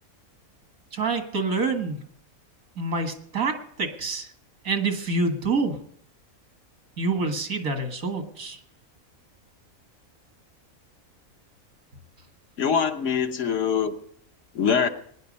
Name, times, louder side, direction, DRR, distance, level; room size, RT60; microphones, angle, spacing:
voice 1, 0.9-2.1 2.8-4.3 4.6-5.8 7.0-8.6, right 3 dB, 85° right, 2.2 m, -27 dB
voice 2, 12.6-13.9 14.5-14.9, left 7 dB, 60° left, 1.3 m, -23 dB
20.0 x 10.5 x 5.3 m
omnidirectional pair, 1.4 m